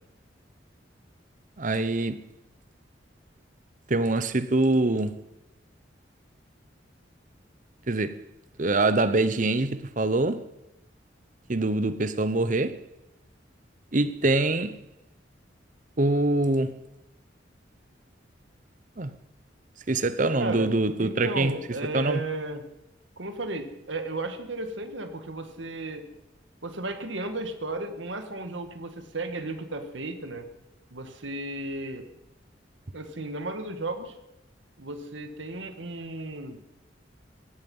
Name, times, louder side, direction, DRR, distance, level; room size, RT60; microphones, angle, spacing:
voice 1, 1.6-2.2 3.9-5.3 7.9-8.2 8.6-10.4 11.5-12.8 13.9-14.8 16.0-16.7 19.0-19.1 19.9-21.5 21.9-22.2, right 2 dB, 45° right, 0.9 m, -24 dB
voice 2, 20.4-22.7 23.2-26.1 26.6-30.5 30.9-32.1 32.9-34.2 34.8-36.6, right 2 dB, 85° right, 1.8 m, -34 dB
17.0 x 15.0 x 5.5 m
head